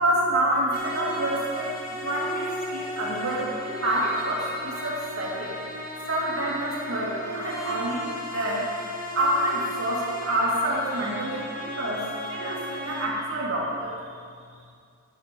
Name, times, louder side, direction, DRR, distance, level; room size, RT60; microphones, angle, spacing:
voice 1, 0.0-5.5 6.1-8.7 9.1-13.9, right 1 dB, 80° right, -5 dB, 2.3 m, -27 dB
sound 1, 0.7-13.1, equal, 40° left, 1.4 m, -35 dB
9.9 x 8.9 x 5.3 m, 2.2 s
head